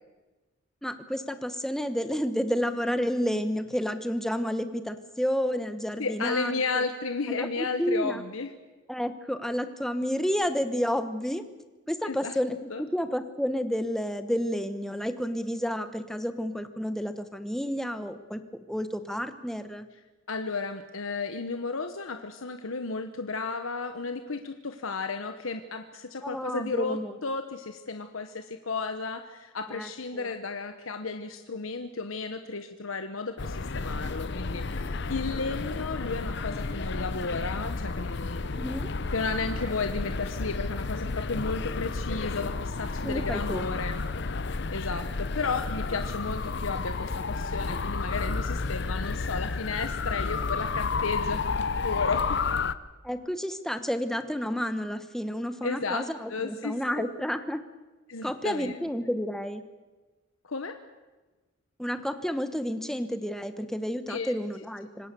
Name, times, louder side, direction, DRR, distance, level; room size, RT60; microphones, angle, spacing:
voice 1, 0.8-6.5 7.3-8.2 8.9-11.4 11.9-18.4 18.7-19.9 26.2-27.2 29.7-30.3 38.5-38.9 43.0-43.6 53.0-57.6 58.2-59.6 61.8-65.1, equal, ahead, 10 dB, 1.1 m, -30 dB
voice 2, 6.0-8.5 12.0-12.4 12.7-12.8 20.3-38.6 39.1-44.0 44.7-51.4 51.8-52.4 55.6-57.1 58.1-58.7 60.4-60.8 64.1-64.3, left 4 dB, 85° left, 7 dB, 1.2 m, -33 dB
sound 1, 33.4-52.7, left 4 dB, 55° left, 0.7 m, -31 dB
25.5 x 20.0 x 6.9 m, 1.2 s
head